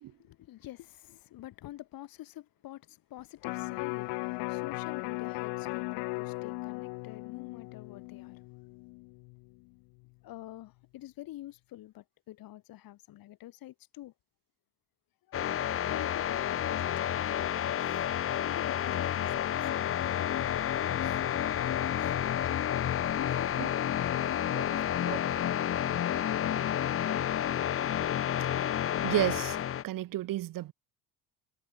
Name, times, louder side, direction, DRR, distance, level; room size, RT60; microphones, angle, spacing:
voice 1, 0.2-8.4 10.2-14.1 15.3-15.4 15.9-18.0 18.4-19.5 19.8-22.1 23.2-23.7 24.1-26.3, left 15 dB, 60° left, 5.2 m, -47 dB
Electric guitar, 3.4-9.6 10.0-10.1, left 29 dB, 80° left, 1.0 m, -37 dB
sound 1, 15.3-29.8, left 10 dB, 35° left, 0.9 m, -30 dB
voice 2, 29.0-29.6 29.8-30.7, right 15 dB, 60° right, 1.9 m, -32 dB
cardioid pair, 105°, 38 cm